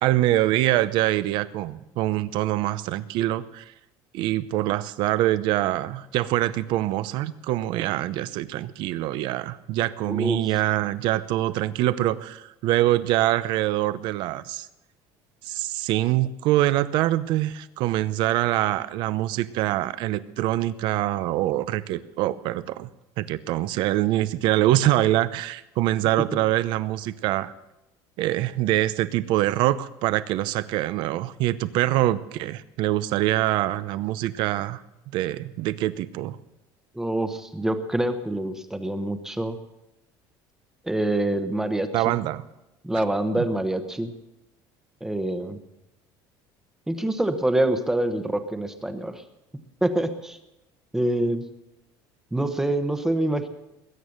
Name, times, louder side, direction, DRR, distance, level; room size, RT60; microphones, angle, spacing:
voice 1, 0.0-3.6 4.1-14.7 15.4-22.9 23.2-27.5 28.2-34.8 35.1-36.4 41.9-42.4 43.4-43.5, right 15 dB, 60° right, 15 dB, 0.8 m, -24 dB
voice 2, 10.1-10.4 36.9-39.6 40.8-42.2 42.8-44.1 45.0-45.6 46.9-49.2 49.8-50.4 50.9-51.4 52.3-53.5, right 1 dB, 5° right, 7 dB, 1.0 m, -26 dB
21.0 x 9.2 x 6.5 m, 0.93 s
cardioid pair, 165°, 9 cm